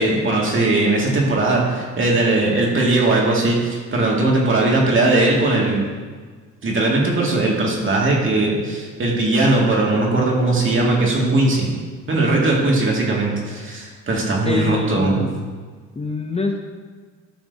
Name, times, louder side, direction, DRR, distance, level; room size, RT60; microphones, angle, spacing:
voice 1, 0.0-5.9 6.6-11.7 12.1-15.3, right 2 dB, 40° right, -3 dB, 2.3 m, -19 dB
voice 2, 14.4-15.4 16.0-16.6, left 3 dB, 20° left, 3 dB, 0.7 m, -25 dB
13.5 x 5.9 x 2.8 m, 1.5 s
cardioid pair, 90°, 30 cm